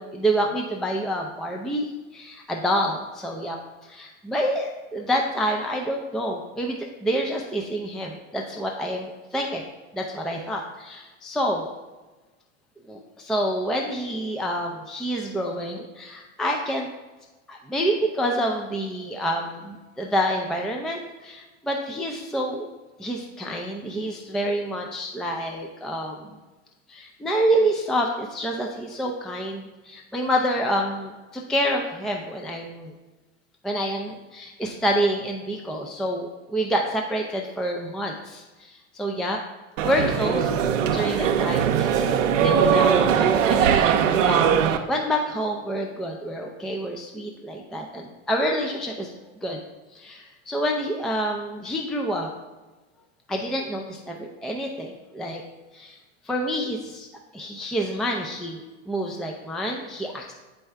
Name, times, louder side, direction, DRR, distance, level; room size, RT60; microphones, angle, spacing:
voice 1, 0.0-9.6 9.9-11.7 12.9-16.9 17.5-22.7 23.0-26.2 26.9-32.9 33.6-39.4 39.8-40.5 40.9-44.0 44.2-49.1 49.4-49.6 49.9-52.3 53.3-55.4 55.7-56.0 56.2-57.1 57.3-60.3, equal, ahead, 1 dB, 0.4 m, -28 dB
sound 1, 39.8-44.8, right 8 dB, 75° right, 0.7 m, -20 dB
7.7 x 4.6 x 3.3 m, 1.2 s
hypercardioid pair, 100°, 38 cm